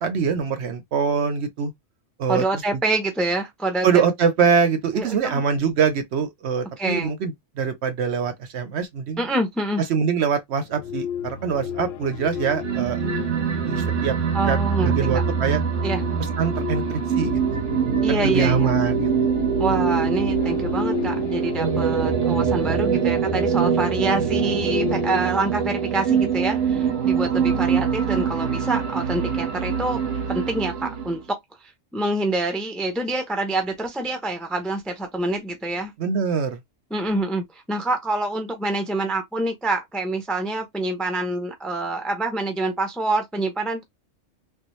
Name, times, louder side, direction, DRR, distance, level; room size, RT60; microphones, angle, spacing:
voice 1, 0.0-1.7 2.2-2.4 3.8-9.2 9.9-13.0 13.6-14.2 14.5-15.6 16.4-17.6 18.1-19.1 36.0-36.6, right 6 dB, 65° right, 0.9 m, -24 dB
voice 2, 2.3-3.9 4.9-5.4 6.8-7.1 9.2-9.8 14.3-14.9 15.8-16.0 18.0-18.7 19.6-30.0 30.3-31.4 31.6-35.9 36.9-43.8, right 2 dB, ahead, 0.4 m, -26 dB
sound 1, 10.6-25.3, left 8 dB, 65° left, 0.7 m, -34 dB
sound 2, 12.6-31.2, right 7 dB, 85° right, 1.1 m, -23 dB
3.5 x 2.2 x 3.0 m
omnidirectional pair, 1.3 m